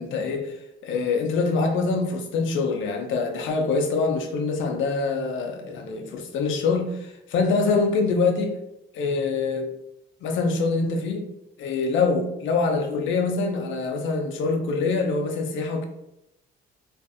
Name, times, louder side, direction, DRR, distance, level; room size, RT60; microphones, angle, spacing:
voice 1, 0.0-8.6 8.9-9.7 10.2-11.3 11.6-15.8, left 4 dB, 75° left, 0.5 m, -25 dB
2.5 x 2.3 x 2.4 m
cardioid pair, 90°, 20 cm